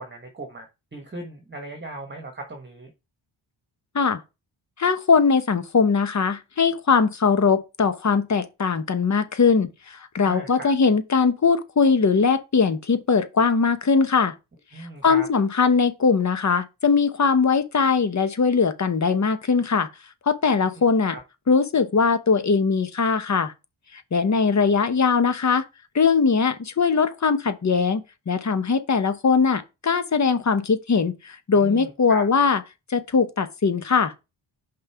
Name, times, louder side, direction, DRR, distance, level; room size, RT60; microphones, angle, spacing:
voice 1, 0.0-2.9 10.2-10.7 14.7-15.3 21.1-21.2 31.5-32.2, right 2 dB, 20° right, 1.3 m, -37 dB
voice 2, 4.8-14.3 15.0-19.9 20.3-21.1 21.5-23.5 24.1-25.6 25.9-32.6 32.9-34.1, left 5 dB, 35° left, 0.9 m, -21 dB
5.4 x 3.8 x 5.6 m
cardioid pair, 80°, 48 cm